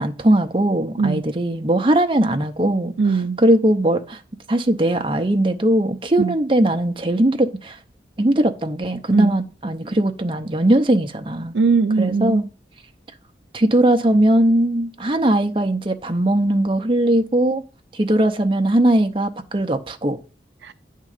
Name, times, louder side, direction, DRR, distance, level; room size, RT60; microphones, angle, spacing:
voice 1, 0.0-2.9 3.4-4.2 4.5-7.8 8.2-11.6 12.0-12.5 13.5-17.6 17.9-20.2, right 1 dB, 30° right, 0.7 m, -19 dB
voice 2, 3.0-3.4 6.2-6.3 9.1-9.3 11.5-12.4 20.6-20.7, right 4 dB, 75° right, 0.5 m, -20 dB
9.6 x 3.7 x 6.7 m
head